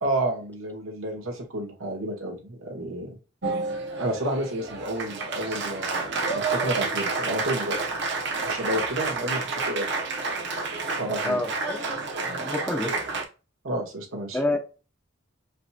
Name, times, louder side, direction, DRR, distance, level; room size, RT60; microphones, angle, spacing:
voice 1, 0.0-3.2 4.0-8.1 8.4-9.9 11.0-11.4 13.6-14.4, right 1 dB, 90° right, 0 dB, 1.6 m, -30 dB
Applause, 3.4-13.2, right 3 dB, 60° right, 0.9 m, -29 dB
voice 2, 11.2-12.0 12.2-12.9 14.3-14.6, left 1 dB, 10° left, 3 dB, 0.8 m, -28 dB
5.0 x 3.0 x 2.3 m, 0.32 s
head